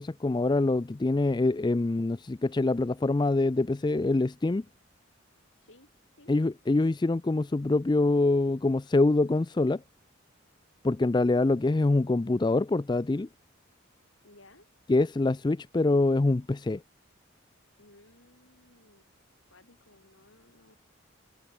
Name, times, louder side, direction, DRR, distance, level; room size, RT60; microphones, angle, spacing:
voice 1, 0.0-4.6 6.3-9.8 10.8-13.3 14.9-16.8, left 2 dB, 20° left, 0.3 m, -25 dB
voice 2, 5.6-6.3 14.2-14.7 17.8-19.1 19.5-20.8, left 2 dB, 70° left, 5.5 m, -58 dB
head